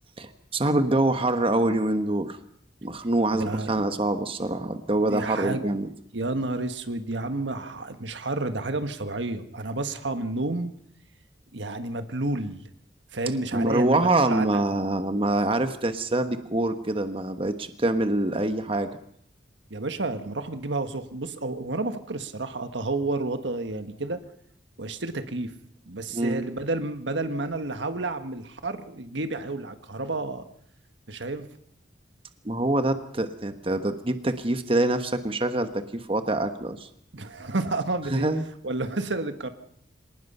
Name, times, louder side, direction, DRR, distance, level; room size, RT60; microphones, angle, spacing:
voice 1, 0.2-2.4 2.8-5.9 13.5-18.9 26.1-26.4 32.4-36.9 38.1-38.5, right 2 dB, 30° right, 8 dB, 1.2 m, -25 dB
voice 2, 3.3-3.7 5.1-5.6 6.1-10.7 11.5-12.6 13.1-14.6 19.7-24.2 24.8-25.5 25.9-30.4 31.1-31.5 37.1-38.3 38.6-39.5, right 2 dB, 85° right, 8 dB, 1.5 m, -30 dB
25.5 x 19.0 x 5.5 m, 0.68 s
head